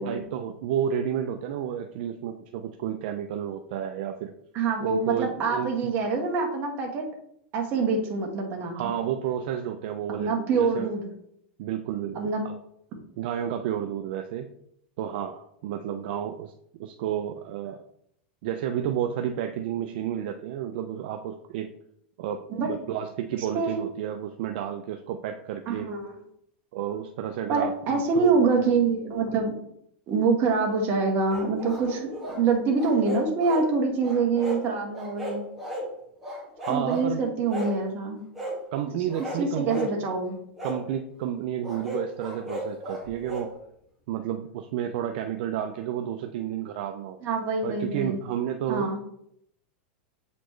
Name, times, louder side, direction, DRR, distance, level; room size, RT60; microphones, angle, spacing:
voice 1, 0.0-4.3 4.8-5.9 8.7-10.9 11.6-12.5 13.2-14.5 15.0-16.5 16.8-17.8 18.4-21.7 22.2-25.9 26.7-28.3 36.6-37.2 38.7-40.0 40.6-43.5 44.1-47.2 47.6-49.0, right 9 dB, 55° right, 5 dB, 0.5 m, -31 dB
voice 2, 4.5-7.1 7.5-8.9 10.2-11.1 12.1-12.4 22.5-22.7 23.5-23.8 25.7-26.1 27.5-29.6 30.1-35.4 36.7-38.3 39.4-40.4 47.2-48.2 48.7-49.0, right 4 dB, 35° right, 1 dB, 1.4 m, -25 dB
sound 1, 31.3-32.4 32.8-33.7 34.0-34.6 34.9-35.9 36.2-37.0 37.5-37.8 38.3-38.6 39.1-39.9 40.6-40.8 41.6-43.5, equal, ahead, 1.9 m, -35 dB
7.8 x 4.2 x 3.1 m, 0.73 s
supercardioid pair, 150°, 6 cm